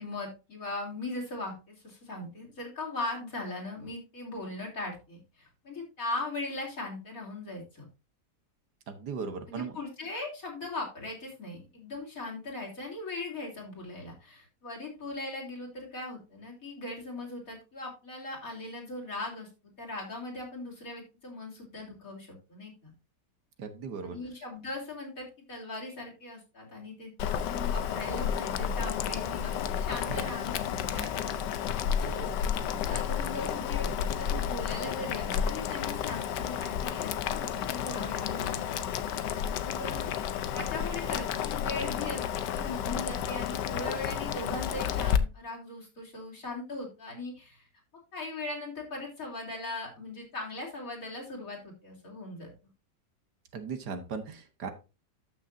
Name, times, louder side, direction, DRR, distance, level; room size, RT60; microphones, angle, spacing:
voice 1, 0.0-7.9 9.5-22.9 24.0-30.6 31.6-32.3 32.7-38.7 39.6-40.1 40.5-47.7 48.1-52.5, left 2 dB, 50° left, -2 dB, 3.7 m, -39 dB
voice 2, 8.9-9.8 23.6-24.2 30.1-30.3 30.9-31.2 32.0-32.1 53.5-54.7, right 5 dB, 70° right, 8 dB, 1.7 m, -38 dB
Boiling, 27.2-45.2, left 9 dB, 80° left, 1.4 m, -31 dB
13.0 x 6.3 x 2.6 m, 0.29 s
omnidirectional pair, 1.9 m